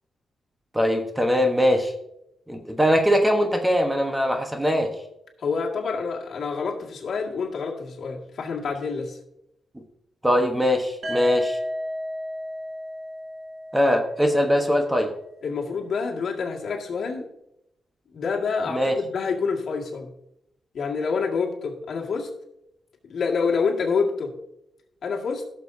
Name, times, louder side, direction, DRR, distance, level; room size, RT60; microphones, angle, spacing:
voice 1, 0.7-1.9 2.5-4.9 10.2-11.6 13.7-15.1 18.7-19.0, equal, 5° right, 4 dB, 1.1 m, -21 dB
voice 2, 5.4-9.2 15.4-17.3 18.1-20.1 20.7-22.3 23.1-24.3 25.0-25.4, left 5 dB, 65° left, -1 dB, 2.0 m, -27 dB
sound 1, 11.0-14.9, equal, 40° right, 1.8 m, -33 dB
16.5 x 6.9 x 2.7 m, 0.82 s
cardioid pair, 115°, 0 cm